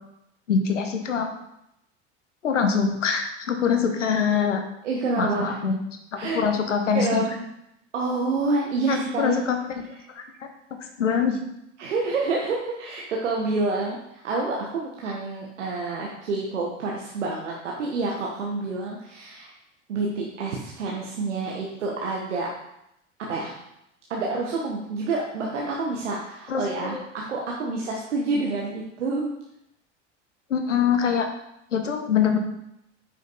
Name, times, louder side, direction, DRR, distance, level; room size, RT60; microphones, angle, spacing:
voice 1, 0.5-1.3 2.4-4.6 5.2-5.8 6.1-7.2 8.9-9.6 10.2-10.3 11.0-11.4 26.5-27.0 30.5-31.3 31.7-32.4, left 6 dB, 75° left, 5 dB, 1.3 m, -23 dB
voice 2, 4.8-5.5 6.2-6.4 6.9-7.3 7.9-9.4 11.8-19.5 19.9-22.5 23.3-23.5 24.1-29.3, right 3 dB, 70° right, -2 dB, 1.5 m, -28 dB
9.5 x 6.7 x 4.2 m, 0.81 s
figure-of-eight pair, 75°, 37 cm